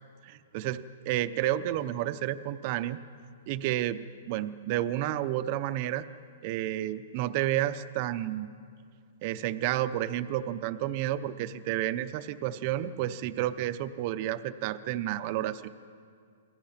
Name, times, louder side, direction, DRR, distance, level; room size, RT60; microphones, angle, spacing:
voice 1, 0.2-3.0 3.5-6.0 6.4-8.5 9.2-15.7, right 13 dB, 35° right, 12 dB, 0.7 m, -31 dB
28.5 x 20.5 x 5.8 m, 2.2 s
hypercardioid pair, 170°, 0 cm